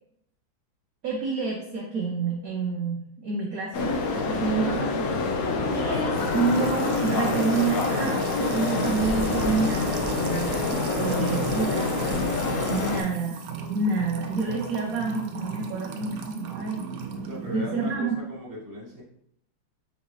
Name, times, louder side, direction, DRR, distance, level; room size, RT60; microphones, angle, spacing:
voice 1, 1.0-3.9 4.2-5.2 5.7-12.1 12.7-13.4 13.7-16.8 17.5-18.2, right 4 dB, 65° right, -1 dB, 0.9 m, -28 dB
sound 1, 3.7-13.0, left 3 dB, 80° left, 0.8 m, -26 dB
Music / Water tap faucet / Trickle dribble, 6.2-17.9, right 6 dB, 85° right, 1.4 m, -36 dB
voice 2, 17.2-19.0, left 1 dB, 15° right, -6 dB, 0.9 m, -38 dB
4.0 x 3.7 x 3.0 m, 0.72 s
omnidirectional pair, 2.2 m